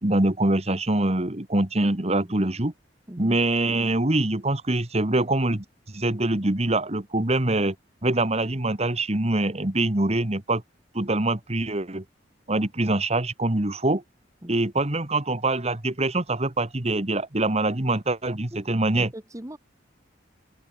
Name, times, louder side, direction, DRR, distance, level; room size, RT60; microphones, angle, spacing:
voice 1, 0.0-2.7 3.2-5.6 5.9-7.8 8.0-10.6 10.9-12.0 12.5-14.0 14.5-19.1, right 2 dB, 35° right, 1.7 m, -24 dB
voice 2, 18.9-19.6, right 1 dB, 15° right, 1.6 m, -39 dB
head